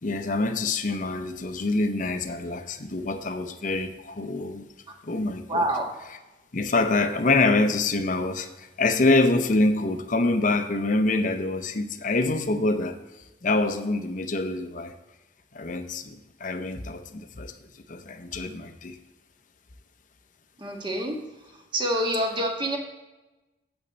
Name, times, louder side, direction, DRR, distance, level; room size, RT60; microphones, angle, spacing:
voice 1, 0.0-4.7 5.0-5.7 6.5-13.0 13.4-14.9 15.5-17.5 17.9-19.0, left 2 dB, 45° left, 8 dB, 0.7 m, -25 dB
voice 2, 5.5-5.9 20.6-21.2 21.7-22.8, right 1 dB, 25° right, 1 dB, 1.5 m, -26 dB
8.6 x 8.0 x 4.0 m, 1.1 s
head